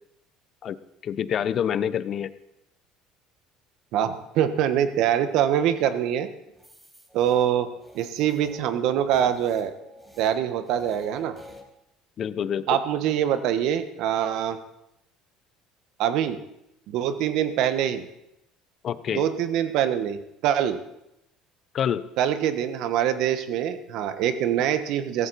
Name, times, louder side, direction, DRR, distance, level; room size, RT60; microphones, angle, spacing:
voice 1, 1.0-2.3 12.2-12.7 18.8-19.2 21.7-22.0, left 9 dB, 50° left, 15 dB, 0.8 m, -26 dB
voice 2, 3.9-6.3 7.1-9.7 10.2-11.3 12.7-14.6 16.0-16.4 16.9-18.1 19.1-20.8 22.2-25.3, right 10 dB, 70° right, 10 dB, 1.3 m, -24 dB
sound 1, 6.5-11.6, left 1 dB, 15° right, 5.1 m, -48 dB
16.5 x 14.5 x 4.3 m, 0.84 s
supercardioid pair, 80°, 0 cm